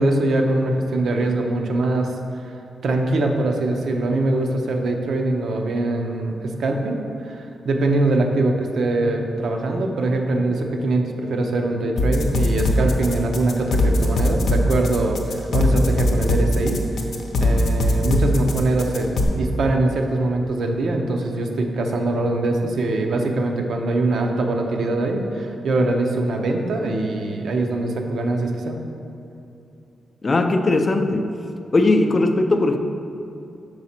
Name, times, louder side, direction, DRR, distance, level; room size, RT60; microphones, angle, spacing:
voice 1, 0.0-2.1 2.8-16.8 17.4-28.8, right 2 dB, 70° right, 3 dB, 0.6 m, -22 dB
sound 1, 12.0-19.2, left 1 dB, 70° left, 0.6 m, -20 dB
voice 2, 30.2-31.3 31.7-32.8, left 2 dB, 30° left, 6 dB, 0.4 m, -18 dB
5.7 x 4.7 x 4.2 m, 2.6 s
wide cardioid pair, 120°, 0 cm